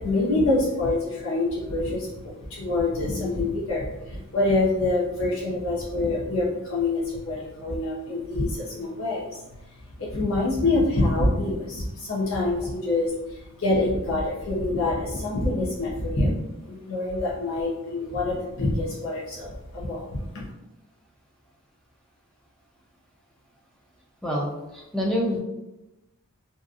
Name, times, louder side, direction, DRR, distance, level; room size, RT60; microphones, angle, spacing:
voice 1, 0.0-16.4 16.7-20.5, left 2 dB, 70° left, -6 dB, 0.5 m, -26 dB
voice 2, 24.2-25.4, equal, 5° left, -3 dB, 0.4 m, -27 dB
2.6 x 2.4 x 2.4 m, 0.95 s
head